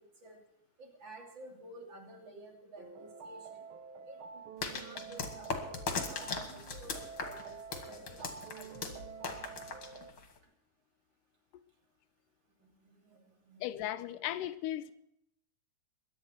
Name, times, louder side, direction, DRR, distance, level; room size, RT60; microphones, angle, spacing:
voice 1, 0.8-3.5 4.1-4.4 4.7-7.6 7.8-8.7 12.6-14.4, right 2 dB, 35° right, 3.5 m, -52 dB
sound 1, 2.8-10.1, right 5 dB, 80° right, 1.1 m, -48 dB
sound 2, 4.6-10.4, left 5 dB, 45° left, 2.4 m, -39 dB
voice 2, 13.6-14.9, left 13 dB, 85° left, 2.3 m, -36 dB
22.0 x 10.5 x 4.5 m
omnidirectional pair, 3.7 m